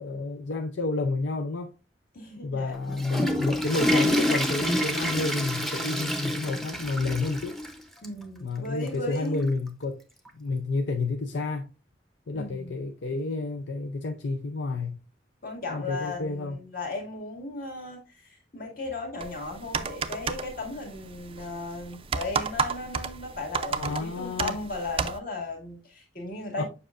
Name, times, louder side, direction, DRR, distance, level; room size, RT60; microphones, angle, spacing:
voice 1, 0.0-1.7 2.4-7.6 8.4-10.0 10.3-11.7 12.3-15.0 15.7-16.6 23.7-24.6 26.6-26.7, left 3 dB, 80° left, 0.6 m, -30 dB
voice 2, 2.1-2.8 3.1-3.2 8.0-9.5 12.3-12.8 15.4-26.6, left 2 dB, 55° left, 2.0 m, -36 dB
Water / Toilet flush, 2.7-7.7 8.0-8.1 8.9-9.0 10.3-10.4, left 1 dB, ahead, 0.7 m, -27 dB
sound 1, 19.2-25.2, right 5 dB, 30° right, 0.4 m, -33 dB
7.3 x 5.5 x 2.5 m
head